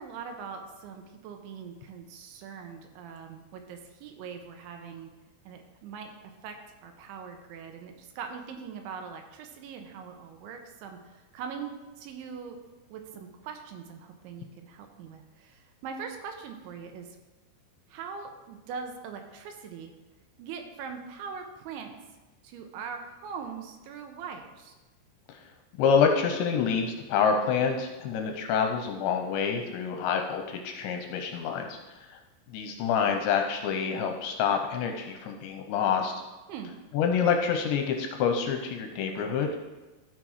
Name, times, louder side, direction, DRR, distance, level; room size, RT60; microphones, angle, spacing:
voice 1, 0.0-5.1 5.4-6.6 6.8-12.6 12.9-17.2 17.9-19.9 20.4-22.0 22.4-24.7 36.5-36.7, right 6 dB, 80° right, 5 dB, 3.2 m, -41 dB
voice 2, 25.8-31.8 32.1-32.2 32.5-36.1 36.9-39.5, left 6 dB, 80° left, 4 dB, 2.8 m, -27 dB
12.5 x 5.8 x 4.8 m, 1.1 s
omnidirectional pair, 5.6 m